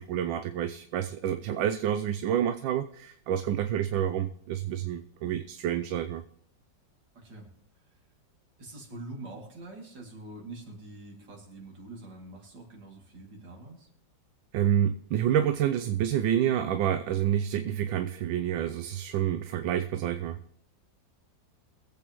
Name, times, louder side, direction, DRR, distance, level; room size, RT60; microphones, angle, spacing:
voice 1, 0.0-6.2 14.5-20.4, right 10 dB, 85° right, 9 dB, 1.4 m, -28 dB
voice 2, 7.1-7.5 7.8-7.9 8.6-13.9, right 2 dB, 70° right, 0 dB, 3.2 m, -45 dB
22.0 x 8.1 x 3.0 m, 0.72 s
omnidirectional pair, 2.0 m